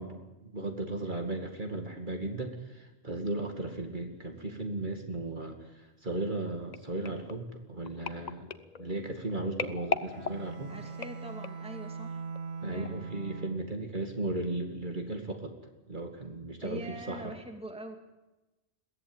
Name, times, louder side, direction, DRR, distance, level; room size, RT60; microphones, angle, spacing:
voice 1, 0.0-8.5 8.8-10.7 12.6-15.6 15.9-17.3, right 2 dB, 40° right, 4 dB, 2.4 m, -36 dB
sound 1, 6.7-11.8 12.4-12.6 12.9-13.0, left 5 dB, 40° left, 0.9 m, -39 dB
Bowed string instrument, 10.0-13.9, right 5 dB, 60° right, 1.4 m, -41 dB
voice 2, 10.7-12.3 12.7-13.1 16.6-18.0, right 1 dB, 5° right, 4 dB, 2.3 m, -43 dB
22.0 x 16.5 x 9.0 m, 1.0 s
omnidirectional pair, 1.2 m